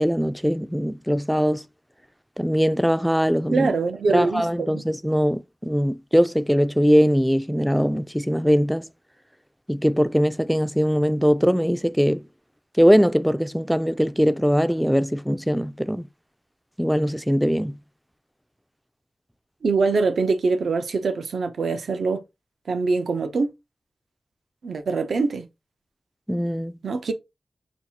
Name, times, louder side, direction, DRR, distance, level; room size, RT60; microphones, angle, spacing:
voice 1, 0.0-1.7 2.4-3.7 4.1-8.9 9.7-12.2 12.8-16.1 16.8-17.8 26.3-26.8, equal, ahead, 0.3 m, -21 dB
voice 2, 3.5-4.8 19.6-22.2 22.7-23.5 24.6-25.5 26.8-27.1, right 4 dB, 85° right, 0.5 m, -23 dB
5.7 x 2.3 x 2.7 m
cardioid pair, 65°, 0 cm